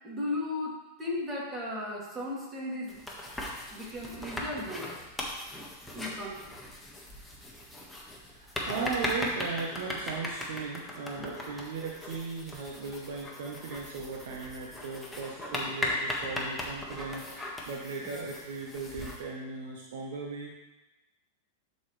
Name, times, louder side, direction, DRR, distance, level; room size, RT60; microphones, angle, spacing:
voice 1, 0.0-3.0 3.7-4.9 5.9-6.4, left 2 dB, 25° right, -5 dB, 2.8 m, -36 dB
sound 1, 2.9-19.2, left 1 dB, 5° left, 1.5 m, -38 dB
voice 2, 8.4-20.6, right 4 dB, 65° right, -1 dB, 1.0 m, -37 dB
11.0 x 4.3 x 3.3 m, 1.0 s
hypercardioid pair, 95°, 0 cm